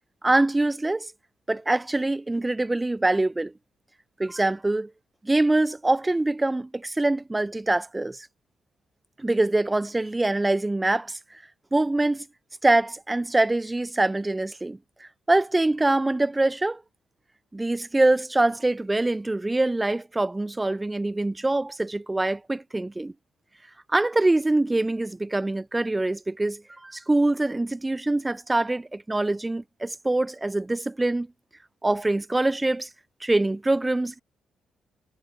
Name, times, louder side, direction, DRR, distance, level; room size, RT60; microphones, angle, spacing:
voice 1, 0.2-1.1 1.5-3.5 4.2-4.9 5.2-8.3 9.2-11.2 11.7-12.2 12.6-16.8 17.5-23.1 23.9-31.3 31.8-32.9 33.2-34.1, right 2 dB, 15° right, 1.6 m, -24 dB
cardioid pair, 90°, 0 cm